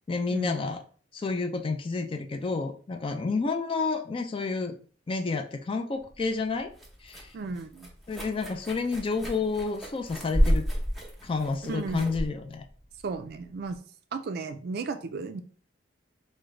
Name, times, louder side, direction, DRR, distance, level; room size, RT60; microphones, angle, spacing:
voice 1, 0.1-0.8 1.1-4.8 5.1-6.7 7.0-7.3 8.1-10.6 11.2-12.7, left 4 dB, 30° left, 7 dB, 0.3 m, -30 dB
sound 1, 6.0-13.8, equal, ahead, 0.7 m, -31 dB
voice 2, 7.3-7.9 11.7-12.0 13.0-13.8 14.1-15.4, right 4 dB, 55° right, 8 dB, 0.3 m, -34 dB
3.6 x 2.1 x 3.1 m, 0.43 s
head